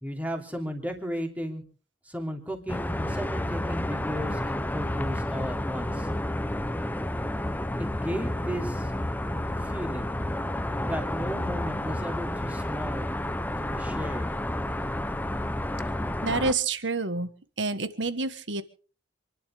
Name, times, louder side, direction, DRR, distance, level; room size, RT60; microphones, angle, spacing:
voice 1, 0.0-1.6 2.0-6.1 7.8-8.9 9.6-10.1 10.8-13.1 13.6-14.3, equal, 10° right, 3 dB, 3.0 m, -34 dB
sound 1, 2.7-16.5, left 1 dB, 10° left, 0.7 m, -30 dB
voice 2, 16.2-17.3 17.6-18.6, right 3 dB, 75° right, 12 dB, 1.6 m, -28 dB
27.5 x 11.5 x 3.7 m, 0.39 s
head